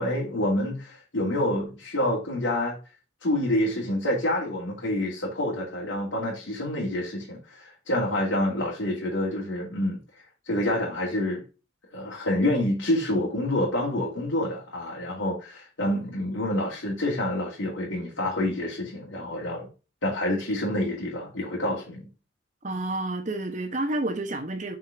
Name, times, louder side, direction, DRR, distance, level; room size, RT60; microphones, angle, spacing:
voice 1, 0.0-2.8 3.2-10.0 10.4-11.4 11.9-19.7 20.0-22.1, left 1 dB, 80° left, 2.6 m, -27 dB
voice 2, 22.6-24.8, right 2 dB, 40° right, 0.9 m, -29 dB
5.9 x 5.0 x 4.9 m
head